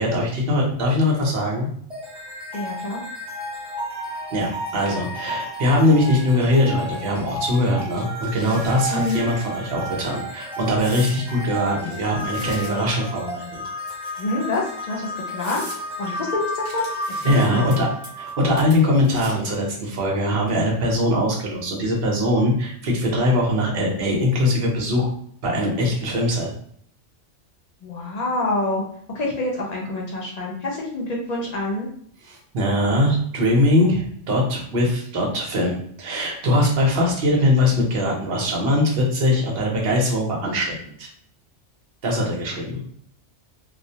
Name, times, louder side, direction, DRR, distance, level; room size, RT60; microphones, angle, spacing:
voice 1, 0.0-1.7 4.3-13.6 17.2-17.9 18.2-25.1 25.4-26.5 32.2-41.1 42.0-42.8, left 1 dB, 60° right, -1 dB, 0.9 m, -21 dB
sound 1, 1.9-19.1, equal, 5° right, 0.7 m, -33 dB
voice 2, 2.5-3.0 8.9-9.2 14.2-15.6 16.0-16.9 17.2-17.6 27.8-28.8 29.1-31.9, left 2 dB, 45° left, -3 dB, 0.5 m, -26 dB
sound 2, 8.0-9.2 9.6-9.9 10.8-11.2 11.8-13.0 13.8-14.4 14.9-15.0 15.4-15.8 16.6-17.7 18.0-18.3 18.6-19.5, right 1 dB, 30° right, 1.0 m, -41 dB
2.4 x 2.0 x 2.7 m, 0.62 s
omnidirectional pair, 1.2 m